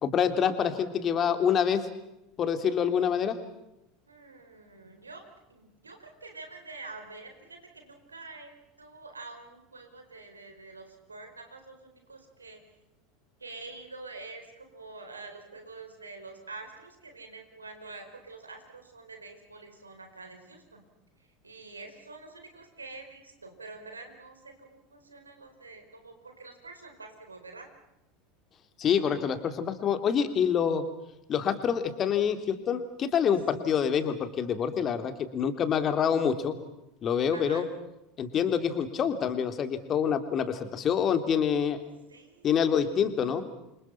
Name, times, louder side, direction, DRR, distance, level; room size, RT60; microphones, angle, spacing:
voice 1, 0.0-1.9 2.4-3.4 28.8-30.8 31.3-36.6 37.0-37.6 38.2-41.8 42.4-43.4, left 7 dB, 35° left, 9 dB, 3.1 m, -26 dB
voice 2, 4.1-5.2 5.5-12.6 13.4-20.8 21.4-27.7 37.3-37.7 42.1-42.5 42.9-43.1, right 3 dB, 85° right, 5 dB, 4.8 m, -46 dB
29.5 x 26.0 x 5.8 m, 0.88 s
figure-of-eight pair, 75°, 0 cm